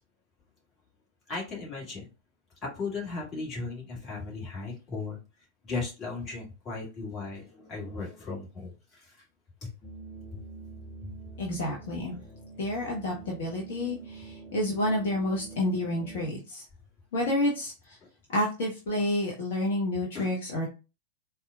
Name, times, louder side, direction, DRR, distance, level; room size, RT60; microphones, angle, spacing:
voice 1, 1.3-2.1 2.6-5.2 5.6-9.2 9.6-9.7 11.0-11.1 20.1-20.3, left 3 dB, 30° left, -4 dB, 1.7 m, -36 dB
sound 1, 9.8-16.3, right 4 dB, 10° left, 1.2 m, -45 dB
voice 2, 11.4-12.2 12.6-16.6 17.1-18.0 18.3-20.7, left 1 dB, 55° left, -2 dB, 0.9 m, -29 dB
4.2 x 2.3 x 2.3 m, 0.31 s
figure-of-eight pair, 90°, 0 cm